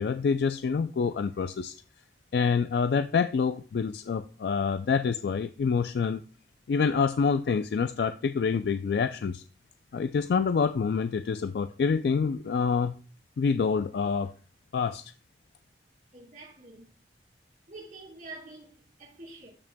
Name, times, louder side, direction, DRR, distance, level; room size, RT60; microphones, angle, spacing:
voice 1, 0.0-1.7 2.3-6.2 6.7-9.4 9.9-13.0 13.4-14.3 14.7-15.1, left 5 dB, 70° left, 0.3 m, -27 dB
voice 2, 16.1-16.9 17.7-19.5, right 2 dB, 45° right, 4.0 m, -46 dB
12.5 x 6.1 x 2.2 m
head